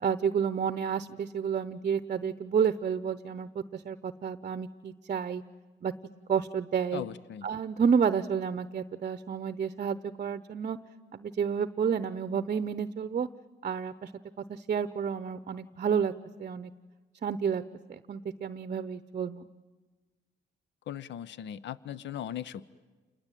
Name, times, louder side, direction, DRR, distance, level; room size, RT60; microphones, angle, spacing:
voice 1, 0.0-5.4 5.8-5.9 6.3-7.0 7.4-10.8 11.1-13.3 13.6-14.1 14.5-16.1 16.4-16.7 17.2-17.6 17.9-19.5, right 7 dB, 40° right, 13 dB, 0.8 m, -30 dB
voice 2, 6.9-7.5 20.9-22.6, left 10 dB, 65° left, 18 dB, 0.8 m, -38 dB
28.0 x 21.0 x 9.1 m, 1.3 s
cardioid pair, 90°, 20 cm